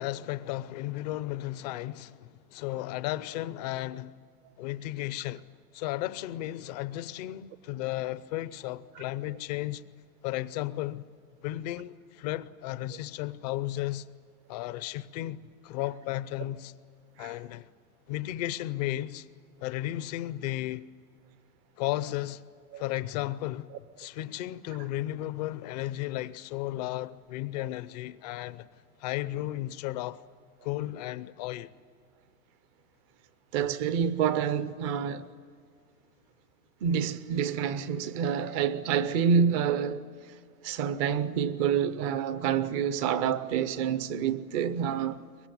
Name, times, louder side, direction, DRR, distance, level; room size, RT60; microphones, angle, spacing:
voice 1, 0.0-4.2 4.6-5.5 5.7-9.8 10.2-11.1 11.4-14.1 14.5-16.7 17.2-17.7 18.1-19.3 19.6-20.9 21.8-22.4 22.8-23.7 24.0-28.7 29.0-30.2 30.6-31.7, left 15 dB, 30° left, 0.5 m, -34 dB
voice 2, 33.5-35.3 36.8-40.0 40.6-45.2, right 7 dB, 25° right, 0.5 m, -28 dB
23.5 x 20.5 x 9.4 m
hypercardioid pair, 145°, 46 cm